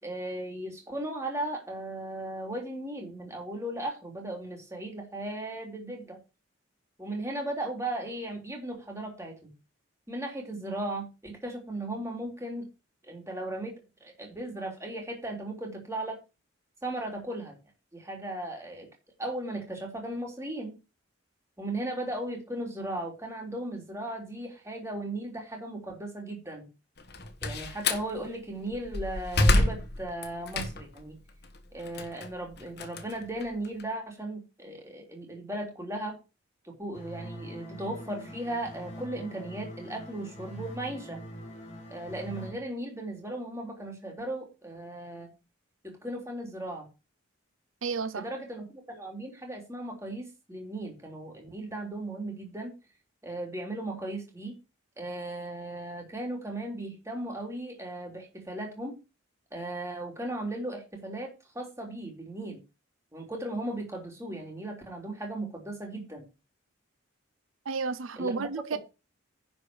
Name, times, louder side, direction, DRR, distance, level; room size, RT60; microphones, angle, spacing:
voice 1, 0.0-6.2 7.0-9.5 10.1-12.7 13.0-16.2 16.8-17.6 17.9-18.9 19.2-20.7 21.6-26.7 27.4-31.1 31.7-36.2 36.6-41.2 41.9-45.3 45.8-46.9 48.1-52.7 53.2-54.5 55.0-59.0 59.5-62.6 63.1-66.3 68.2-68.8, right 1 dB, 15° right, 3.4 m, -37 dB
Slam, 27.0-28.1 28.7-31.0 31.4-33.8, left 2 dB, 50° left, 1.4 m, -28 dB
sound 1, 36.9-42.5, equal, 30° left, 3.8 m, -43 dB
voice 2, 47.8-48.3 67.6-68.8, right 4 dB, 80° right, 0.7 m, -31 dB
10.5 x 5.1 x 6.3 m
head